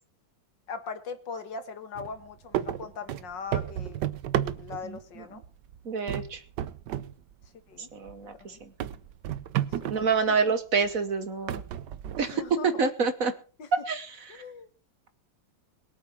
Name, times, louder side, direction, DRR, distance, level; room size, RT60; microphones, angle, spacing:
voice 1, 0.7-4.0 4.5-5.4 7.7-7.9 8.4-8.6 9.7-9.9 10.3-10.5 12.2-12.9 13.6-13.7 14.3-14.7, left 5 dB, 70° left, 9 dB, 2.4 m, -40 dB
sound 1, 2.0-2.2 2.5-5.0 5.4-5.8 6.1-7.1 7.4-7.5 8.1-8.2 8.8-10.1 10.8-10.9 11.5-12.5, right 11 dB, 70° right, 1.4 m, -32 dB
voice 2, 5.9-6.4 7.9-8.3 9.9-11.6 12.2-13.3 13.9-14.1, right 5 dB, 50° right, 11 dB, 1.5 m, -26 dB
22.5 x 8.5 x 4.5 m, 0.37 s
omnidirectional pair, 2.0 m